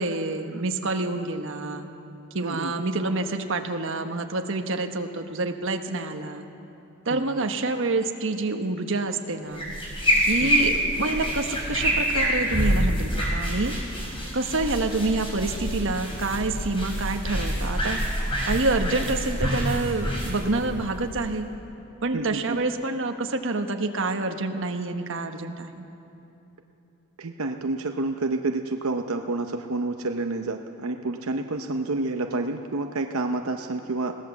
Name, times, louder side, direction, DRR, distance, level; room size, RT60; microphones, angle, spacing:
voice 1, 0.0-1.9 2.3-6.5 7.0-9.7 10.2-13.7 14.3-18.0 18.4-21.5 22.0-25.8, right 2 dB, 65° right, 5 dB, 1.3 m, -27 dB
voice 2, 2.4-2.7 7.1-7.5 10.4-10.7 22.1-22.6 27.2-34.2, right 2 dB, 90° right, 5 dB, 0.8 m, -29 dB
sound 1, 9.5-21.5, equal, 25° left, 5.4 m, -27 dB
21.5 x 17.0 x 7.1 m, 2.9 s
head